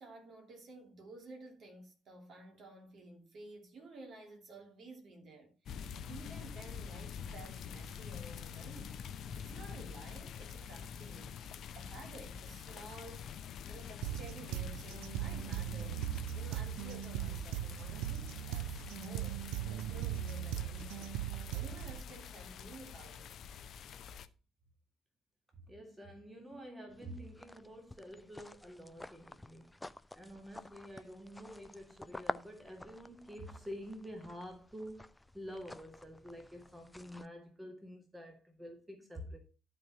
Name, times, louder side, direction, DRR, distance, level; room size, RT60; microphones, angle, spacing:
voice 1, 0.0-9.0 9.4-11.3 11.7-13.3 13.7-19.4 19.7-21.1 21.5-23.3, right 2 dB, 45° right, 2.9 m, -53 dB
sound 1, 5.7-24.3, left 7 dB, 50° left, 0.6 m, -46 dB
sound 2, 14.0-22.0, right 12 dB, 60° right, 0.4 m, -39 dB
voice 2, 25.6-29.7 30.1-35.1 35.3-39.4, equal, 10° right, 1.9 m, -48 dB
sound 3, 26.9-37.3, left 1 dB, 10° left, 0.5 m, -49 dB
11.5 x 4.6 x 5.6 m
figure-of-eight pair, 50°, 0 cm